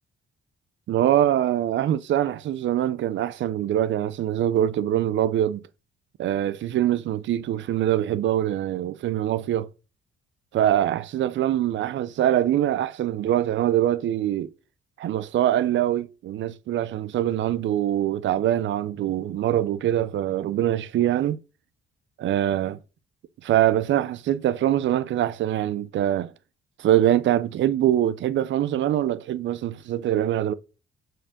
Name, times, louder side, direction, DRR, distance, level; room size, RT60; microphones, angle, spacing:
voice 1, 0.9-5.6 6.2-9.7 10.5-14.5 15.0-21.4 22.2-22.8 23.4-26.3 26.8-30.5, right 12 dB, 70° right, 0.7 m, -23 dB
6.3 x 4.5 x 6.5 m
cardioid pair, 90°, 20 cm